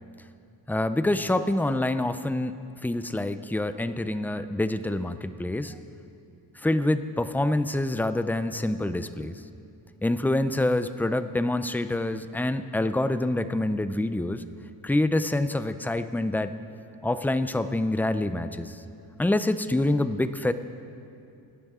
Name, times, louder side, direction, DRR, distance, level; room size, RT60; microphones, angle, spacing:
voice 1, 0.7-2.6 2.8-5.8 6.6-9.4 10.0-14.4 14.8-16.5 17.0-18.8 19.2-20.5, left 1 dB, 5° left, 11 dB, 0.4 m, -26 dB
27.5 x 11.5 x 3.7 m, 2.6 s
wide cardioid pair, 145°, 41 cm